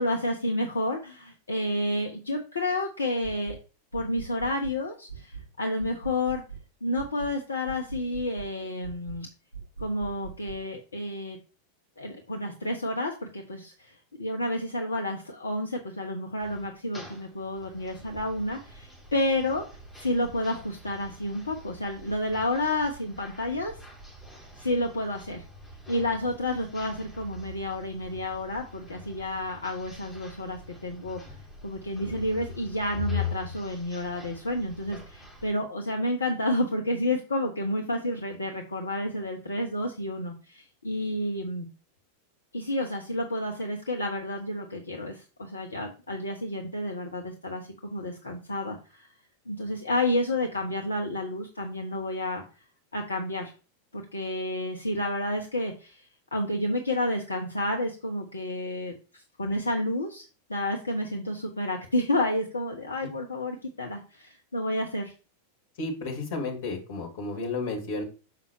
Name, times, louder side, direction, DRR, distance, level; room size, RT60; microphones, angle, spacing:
voice 1, 0.0-3.6 3.9-6.4 6.8-9.3 9.8-11.4 12.0-19.6 20.0-23.7 24.6-25.4 25.9-31.2 31.6-41.7 42.5-49.1 49.5-52.4 52.9-53.5 53.9-65.1, left 1 dB, 75° left, 2 dB, 0.9 m, -30 dB
sound 1, 3.2-3.6 3.9-4.8 5.1-5.5 5.8-6.7 7.0-7.4 7.7-8.5 8.8-9.2 9.5-10.6, right 6 dB, 80° right, 1.8 m, -42 dB
sound 2, 16.4-35.5, left 4 dB, 10° left, 3.1 m, -42 dB
voice 2, 65.8-68.0, left 3 dB, 50° left, 1 dB, 2.3 m, -32 dB
6.9 x 5.5 x 3.1 m, 0.33 s
figure-of-eight pair, 90°, 0 cm